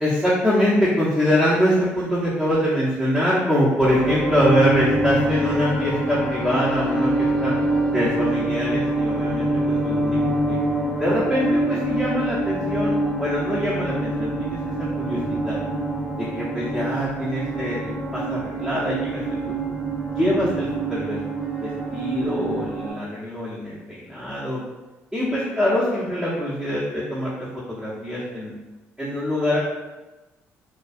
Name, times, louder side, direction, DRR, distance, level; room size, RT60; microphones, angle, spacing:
voice 1, 0.0-7.5 7.9-10.2 10.5-10.6 11.0-15.2 15.4-15.6 16.2-19.5 20.2-21.2 21.6-24.6 25.1-27.3 27.7-28.5 29.0-29.6, equal, 10° right, -10 dB, 0.9 m, -24 dB
sound 1, 3.8-22.9, right 1 dB, 10° left, 1.0 m, -25 dB
2.3 x 2.2 x 2.6 m, 1.1 s
hypercardioid pair, 55°, 7 cm